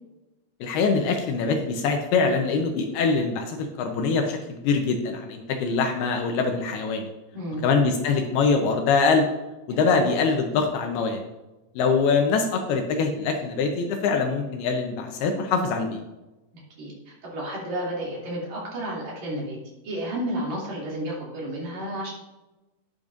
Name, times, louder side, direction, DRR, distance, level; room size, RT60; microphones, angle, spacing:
voice 1, 0.6-7.1 7.6-9.3 9.7-11.2 11.8-16.0, left 4 dB, 75° left, 4 dB, 2.6 m, -23 dB
voice 2, 7.3-7.7 9.7-10.0 16.5-19.6 19.8-22.1, right 1 dB, 45° right, -5 dB, 3.6 m, -32 dB
10.5 x 9.6 x 2.6 m, 1.0 s
omnidirectional pair, 4.9 m